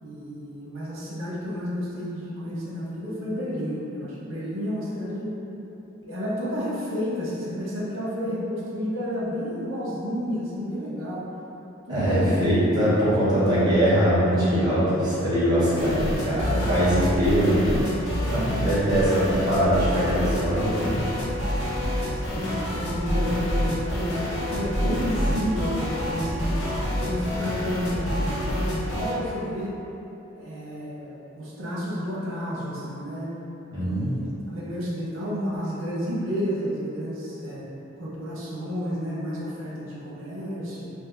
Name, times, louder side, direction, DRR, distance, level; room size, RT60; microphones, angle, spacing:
voice 1, 0.0-5.3 6.0-11.3 11.9-12.6 15.0-15.2 16.3-16.9 18.8-19.0 22.1-26.6 27.0-29.7 30.4-33.3 33.8-37.7 38.0-40.9, equal, 75° right, -7 dB, 0.8 m, -31 dB
voice 2, 11.9-17.8 18.2-21.0 33.7-34.1, equal, 20° right, -12 dB, 1.0 m, -22 dB
sound 1, 15.8-29.2, equal, 75° left, 0.8 m, -28 dB
2.6 x 2.5 x 3.7 m, 3.0 s
head